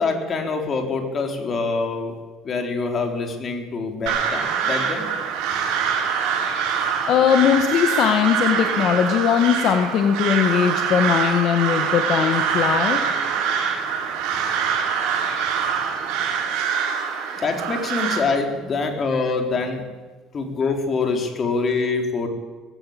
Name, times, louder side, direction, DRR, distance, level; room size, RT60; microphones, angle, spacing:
voice 1, 0.0-2.1 2.4-5.1 17.4-19.9 20.3-22.3, left 4 dB, 35° left, 4 dB, 3.8 m, -25 dB
Crow, 4.1-18.2, right 7 dB, 80° right, 6.7 m, -24 dB
voice 2, 7.1-13.0, left 8 dB, 55° left, 5 dB, 1.7 m, -19 dB
19.0 x 16.0 x 8.8 m, 1.4 s
cardioid pair, 135°, 0 cm